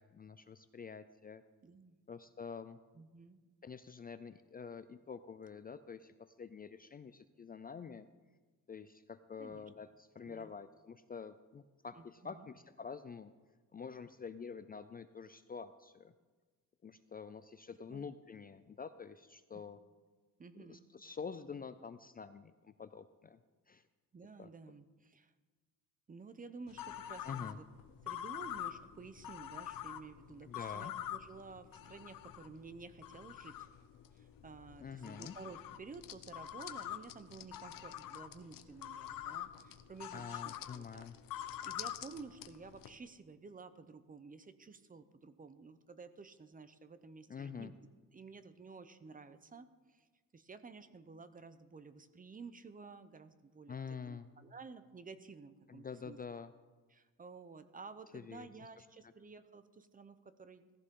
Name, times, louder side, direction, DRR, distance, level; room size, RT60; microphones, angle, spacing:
voice 1, 0.0-1.4 2.1-2.8 3.6-8.1 8.7-13.3 13.7-16.1 16.8-19.8 20.6-23.4 23.7-23.8 24.4-24.5 27.2-27.6 30.4-30.9 34.8-35.4 40.1-41.2 47.3-47.7 53.7-54.3 55.7-56.5 58.1-58.5 58.8-59.1, left 6 dB, 30° left, 11 dB, 0.4 m, -47 dB
voice 2, 1.6-2.0 2.9-3.4 9.4-9.7 10.3-10.5 12.0-12.5 17.9-18.1 19.5-19.6 20.4-20.8 24.1-25.3 26.1-27.6 28.0-33.7 34.1-41.1 41.6-47.7 48.1-50.1 50.3-53.8 54.0-56.2 56.9-60.8, right 4 dB, 25° right, 11 dB, 0.7 m, -52 dB
sound 1, 26.7-42.9, left 11 dB, 80° left, 0.8 m, -46 dB
17.0 x 14.5 x 3.8 m, 1.3 s
wide cardioid pair, 150°, 33 cm